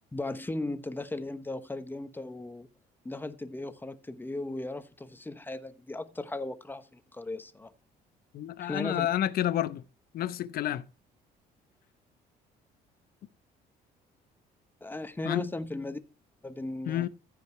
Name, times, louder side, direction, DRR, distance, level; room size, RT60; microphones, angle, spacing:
voice 1, 0.1-2.7 3.0-7.7 8.6-9.1 14.8-16.0 16.4-17.1, left 2 dB, 10° left, 1.0 m, -37 dB
voice 2, 8.3-9.8 10.1-10.9 15.2-15.5 16.9-17.1, left 12 dB, 60° left, 0.9 m, -29 dB
15.0 x 5.2 x 4.5 m
cardioid pair, 110°, 17 cm